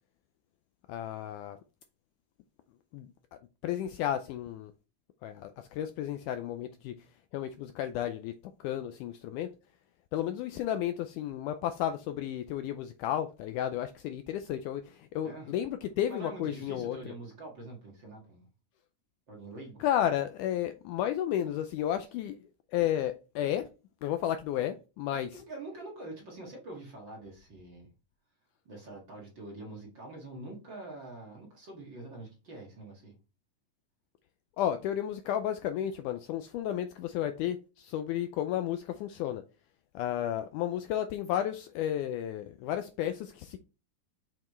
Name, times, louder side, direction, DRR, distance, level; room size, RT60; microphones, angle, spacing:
voice 1, 0.9-1.6 2.9-3.1 3.6-4.7 5.2-6.9 7.3-8.3 8.6-9.5 10.1-17.1 19.8-22.4 22.7-23.7 24.0-25.3 34.6-39.4 40.0-43.6, left 11 dB, 80° left, 1.9 m, -32 dB
voice 2, 15.2-15.5 16.1-18.5 19.3-19.8 25.1-27.9 28.7-33.1, right 2 dB, 40° right, 2.0 m, -45 dB
6.9 x 5.8 x 3.1 m
omnidirectional pair, 4.0 m